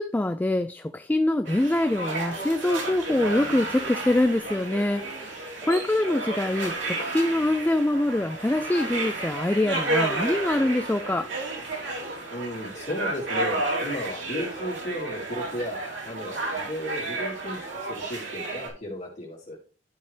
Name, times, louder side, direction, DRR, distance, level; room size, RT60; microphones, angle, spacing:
voice 1, 0.0-5.1 5.6-11.3, left 1 dB, 10° left, 0.3 m, -24 dB
sound 1, 1.4-18.7, right 2 dB, 85° right, 3.1 m, -32 dB
voice 2, 12.3-19.6, left 1 dB, 40° left, 2.8 m, -35 dB
12.0 x 5.7 x 3.3 m
head